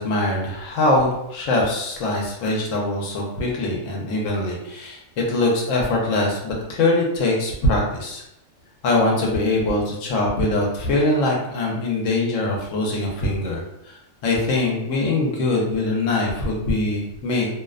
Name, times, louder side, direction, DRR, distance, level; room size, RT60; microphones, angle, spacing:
voice 1, 0.0-5.0 5.3-8.2 8.8-14.0 14.2-17.5, left 2 dB, 70° left, -2 dB, 1.0 m, -22 dB
2.7 x 2.1 x 2.3 m, 0.84 s
omnidirectional pair, 1.4 m